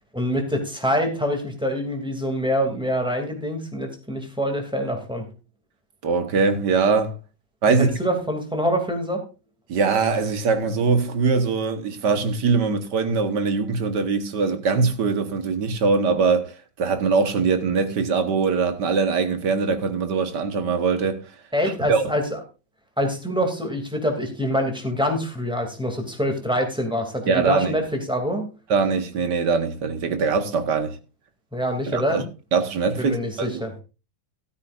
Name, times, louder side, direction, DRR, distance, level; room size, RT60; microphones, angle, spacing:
voice 1, 0.1-5.2 7.8-9.2 21.5-22.4 23.0-28.5 31.5-32.2 33.0-33.8, equal, 5° right, 2.5 m, -25 dB
voice 2, 6.0-7.1 7.6-7.9 9.7-16.5 16.8-21.2 21.9-22.0 27.3-27.8 28.7-31.0 31.9-32.2 32.5-33.6, right 4 dB, 75° right, 1.9 m, -22 dB
13.5 x 13.0 x 2.5 m
omnidirectional pair, 1.9 m